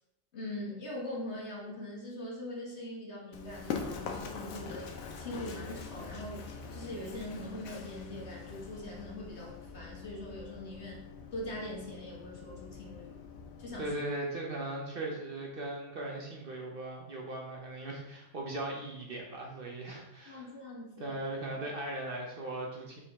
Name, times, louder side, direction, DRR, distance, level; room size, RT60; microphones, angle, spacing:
voice 1, 0.3-4.9 5.2-11.0 11.3-13.2 13.6-13.9 20.3-21.2, left 1 dB, 55° left, -3 dB, 1.7 m, -42 dB
Run, 3.3-13.9, left 5 dB, 85° left, 1.1 m, -43 dB
voice 2, 13.8-20.5 21.0-23.0, right 2 dB, 45° right, -1 dB, 1.0 m, -38 dB
5.3 x 5.0 x 3.6 m, 0.87 s
omnidirectional pair, 1.4 m